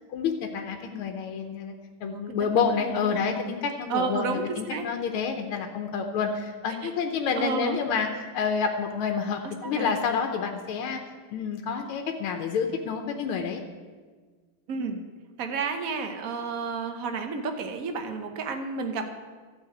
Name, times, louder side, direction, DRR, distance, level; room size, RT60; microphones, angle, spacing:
voice 1, 0.1-1.7 2.0-11.0 11.3-13.6, left 6 dB, 90° left, 4 dB, 1.7 m, -28 dB
voice 2, 2.0-3.5 3.9-4.9 6.8-6.9 7.4-7.8 9.4-9.9 14.7-15.0 15.4-19.1, right 5 dB, 50° right, 6 dB, 1.2 m, -32 dB
12.5 x 5.6 x 7.8 m, 1.4 s
omnidirectional pair, 2.3 m